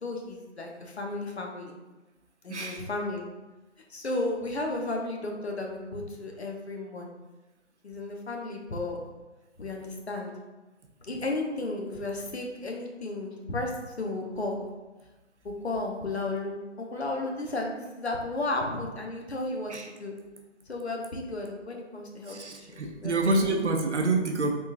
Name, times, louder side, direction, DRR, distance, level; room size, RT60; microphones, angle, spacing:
voice 1, 0.0-1.7 2.4-3.3 3.9-7.1 7.8-9.0 9.6-10.3 11.0-14.6 15.4-19.7 20.0-20.2 20.7-23.6, left 2 dB, 65° left, 1 dB, 0.7 m, -33 dB
voice 2, 2.5-2.8 19.7-19.9 22.3-24.5, right 2 dB, 70° right, 3 dB, 0.6 m, -27 dB
3.5 x 2.7 x 2.5 m, 1.1 s
figure-of-eight pair, 155°, 36 cm